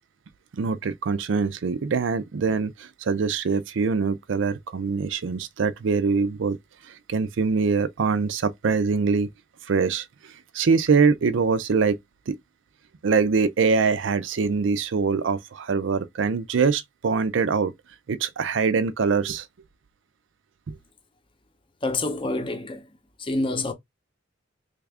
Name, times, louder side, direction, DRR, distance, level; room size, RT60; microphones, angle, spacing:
voice 1, 0.5-6.6 6.8-9.3 9.7-12.0 12.3-12.4 13.0-17.7 18.1-19.5 20.7-20.8, right 5 dB, 75° right, 0.4 m, -23 dB
voice 2, 21.8-22.9 23.2-23.7, left 2 dB, 25° left, 0.6 m, -27 dB
3.3 x 2.4 x 3.4 m
head